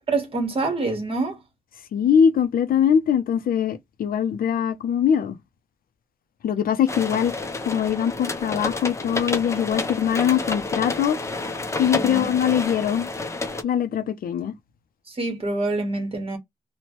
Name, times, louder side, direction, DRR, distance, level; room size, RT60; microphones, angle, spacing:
voice 1, 0.1-1.4 12.0-12.3 15.1-16.4, right 3 dB, 40° right, 1.1 m, -26 dB
voice 2, 1.9-5.4 6.4-7.4 7.7-11.2 11.8-13.1 13.6-14.5, left 8 dB, 80° left, 0.4 m, -22 dB
sound 1, 6.9-13.6, left 3 dB, 20° left, 0.5 m, -29 dB
2.9 x 2.1 x 2.9 m
wide cardioid pair, 115°, 15 cm